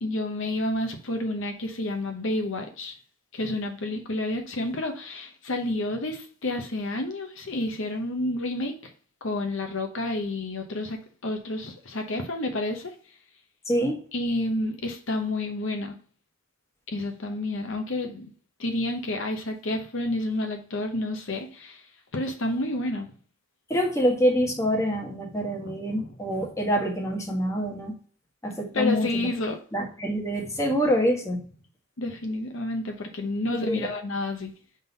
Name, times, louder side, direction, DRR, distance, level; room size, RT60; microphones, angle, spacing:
voice 1, 0.0-2.9 3.3-8.9 9.2-12.9 14.1-16.0 16.9-18.3 18.6-21.8 22.1-23.1 25.4-26.5 28.7-29.6 30.5-30.6 32.0-34.5, left 2 dB, 60° left, 1.0 m, -30 dB
voice 2, 13.7-14.0 23.7-27.9 28.4-29.1 29.7-31.4 33.5-33.9, equal, 15° left, 1.4 m, -26 dB
5.5 x 3.9 x 5.4 m
head